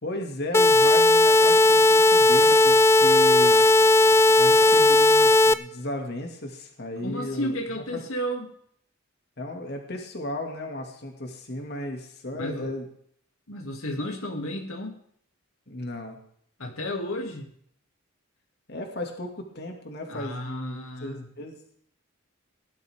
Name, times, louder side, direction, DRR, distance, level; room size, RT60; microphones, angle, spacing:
voice 1, 0.0-3.7 4.4-7.6 7.9-8.0 9.4-12.9 15.7-16.2 18.7-21.5, left 1 dB, 50° left, 3 dB, 2.4 m, -35 dB
sound 1, 0.5-5.5, left 2 dB, 10° left, 0.4 m, -17 dB
voice 2, 7.0-8.5 12.4-12.7 13.5-15.0 16.6-17.5 20.1-21.3, equal, 90° left, 2 dB, 2.5 m, -32 dB
17.5 x 12.5 x 3.6 m, 0.64 s
head